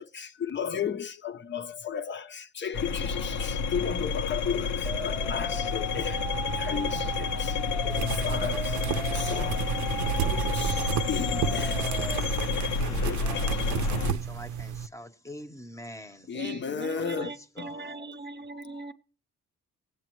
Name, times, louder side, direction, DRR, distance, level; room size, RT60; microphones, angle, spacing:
voice 1, 0.0-6.2 6.5-8.8 9.1-9.6 10.0-12.7 13.0-13.3 16.3-17.3 17.6-17.7, left 7 dB, 40° left, 0.7 m, -35 dB
sound 1, 2.7-14.1, left 5 dB, 75° left, 0.8 m, -30 dB
sound 2, 4.9-12.2, right 2 dB, 10° right, 0.5 m, -37 dB
sound 3, 7.9-14.9, right 9 dB, 70° right, 0.6 m, -32 dB
voice 2, 12.8-16.4 17.0-18.1, equal, 10° left, 0.9 m, -45 dB
voice 3, 16.3-18.9, right 3 dB, 35° right, 0.8 m, -40 dB
18.5 x 8.1 x 3.1 m
cardioid pair, 90°, 30 cm